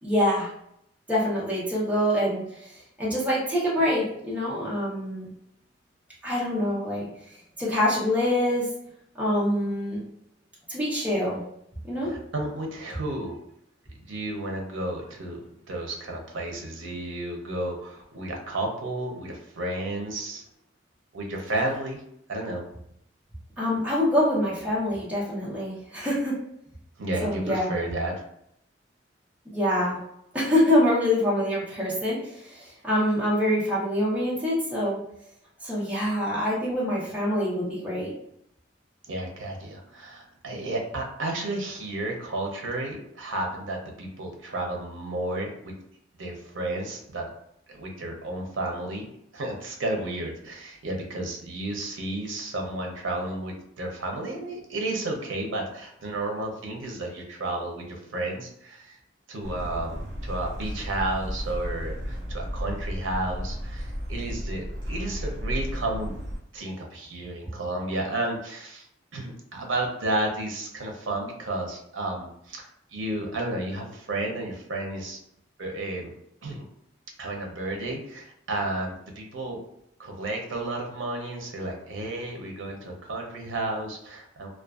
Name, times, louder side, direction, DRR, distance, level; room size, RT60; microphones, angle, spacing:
voice 1, 0.0-0.5 1.1-5.3 6.2-8.7 9.1-10.0 10.7-11.4 11.8-12.1 23.6-26.4 27.2-27.7 29.5-30.0 30.3-35.0 35.6-38.1, left 1 dB, 5° right, -7 dB, 0.6 m, -25 dB
voice 2, 12.0-13.4 14.1-15.4 15.7-20.4 21.1-22.0 22.3-22.6 27.0-28.2 39.1-45.7 46.2-47.3 47.7-49.1 49.3-59.0 59.3-66.2 66.5-68.9 69.1-72.7 72.9-75.2 75.6-76.1 76.4-76.7 77.2-79.6 80.0-84.5, right 2 dB, 80° right, 1 dB, 0.6 m, -32 dB
sound 1, 59.4-66.4, equal, 60° right, 1.0 m, -33 dB
2.4 x 2.2 x 2.3 m, 0.74 s
head